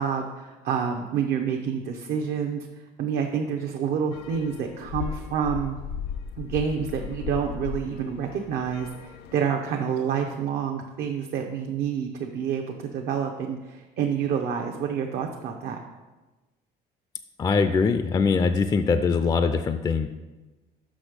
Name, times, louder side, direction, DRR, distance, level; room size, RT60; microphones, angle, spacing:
voice 1, 0.0-2.7 3.0-5.8 6.4-15.8, right 7 dB, 70° right, 2 dB, 0.7 m, -28 dB
sound 1, 4.1-9.3, left 7 dB, 80° left, 0.5 m, -36 dB
voice 2, 17.4-20.1, left 5 dB, 25° left, 9 dB, 0.3 m, -22 dB
6.2 x 5.7 x 5.0 m, 1.2 s
cardioid pair, 110°, 17 cm